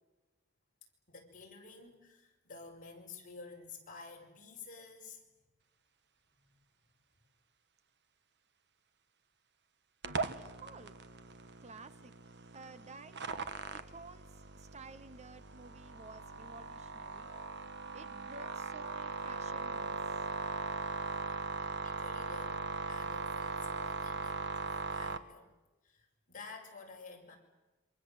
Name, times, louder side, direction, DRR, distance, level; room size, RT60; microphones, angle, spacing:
voice 1, 1.1-5.2 6.4-6.5 21.8-22.6 22.9-25.5 25.8-27.4, left 4 dB, 40° left, 0 dB, 5.7 m, -51 dB
sound 1, 10.0-25.2, right 4 dB, 55° right, 1.3 m, -40 dB
voice 2, 10.2-11.0 11.6-12.1 12.5-13.5 13.7-17.3 17.9-20.3, right 3 dB, 30° right, 13 dB, 0.9 m, -53 dB
27.5 x 25.5 x 7.8 m, 1.1 s
head